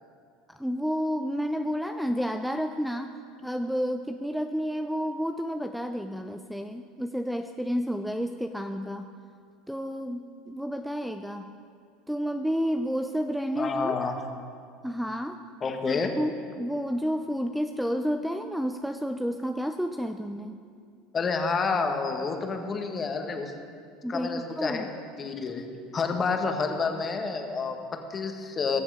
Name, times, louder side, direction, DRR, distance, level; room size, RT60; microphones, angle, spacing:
voice 1, 0.5-3.1 3.4-9.1 9.7-11.5 12.1-14.0 14.8-15.4 15.9-20.6 24.0-24.9, equal, ahead, 7 dB, 0.6 m, -30 dB
voice 2, 13.6-14.2 15.6-16.1 21.1-23.5 24.1-24.9 25.2-25.6 25.9-28.8, left 4 dB, 30° left, 4 dB, 1.6 m, -29 dB
21.0 x 7.1 x 4.9 m, 2.2 s
hypercardioid pair, 85°, 0 cm